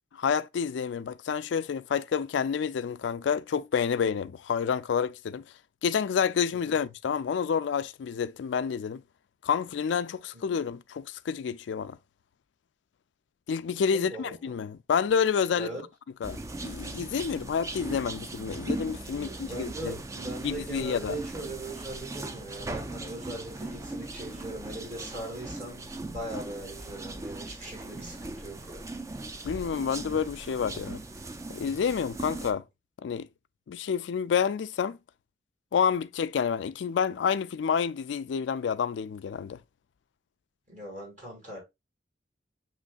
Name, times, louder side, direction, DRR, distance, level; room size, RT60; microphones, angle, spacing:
voice 1, 0.2-5.5 5.8-9.0 9.4-12.0 13.5-15.7 16.2-20.0 20.4-21.2 29.4-31.0 31.5-32.6 33.0-33.3 33.7-35.0 35.7-39.6, left 7 dB, 85° left, 0.3 m, -29 dB
voice 2, 6.5-6.8 10.3-10.6 13.9-14.6 15.6-15.8 19.1-28.9 40.7-41.6, right 2 dB, 45° right, 2.0 m, -40 dB
sound 1, 16.2-32.5, right 2 dB, 15° right, 0.3 m, -39 dB
7.2 x 3.0 x 2.3 m
head